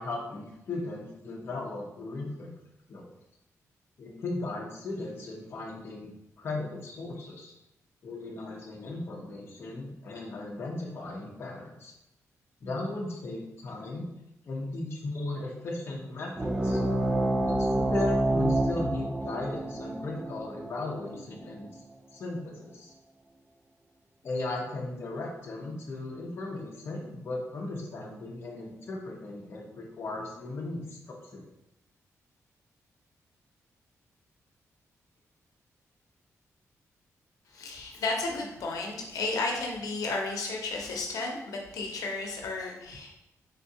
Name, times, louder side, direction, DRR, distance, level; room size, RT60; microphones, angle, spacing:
voice 1, 0.0-2.5 2.9-3.1 4.0-6.1 6.4-7.5 8.0-11.9 12.6-14.1 14.5-16.8 17.4-21.7 22.1-22.9 24.2-31.4, left 2 dB, 45° left, -2 dB, 0.6 m, -37 dB
sound 1, 16.4-21.5, right 1 dB, 10° right, 0.3 m, -28 dB
voice 2, 37.5-43.1, left 3 dB, 85° left, 0 dB, 0.7 m, -33 dB
3.6 x 3.5 x 2.8 m, 0.86 s
wide cardioid pair, 175°, 6 cm